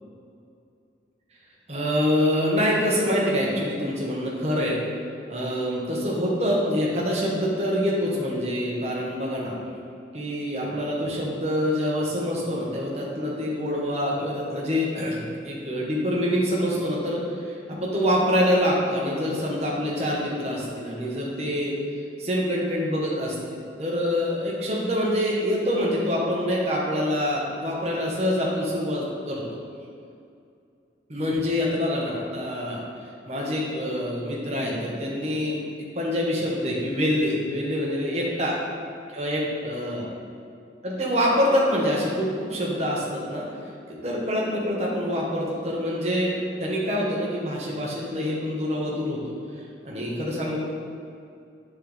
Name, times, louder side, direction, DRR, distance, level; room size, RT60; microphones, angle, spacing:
voice 1, 1.7-4.8 5.3-9.6 10.1-21.7 22.2-29.6 31.1-32.8 33.3-35.6 35.9-38.6 39.1-40.1 40.8-43.5 44.0-46.3 46.6-49.3 49.8-50.6, equal, 35° right, -4 dB, 1.3 m, -25 dB
10.0 x 4.4 x 3.5 m, 2.4 s
head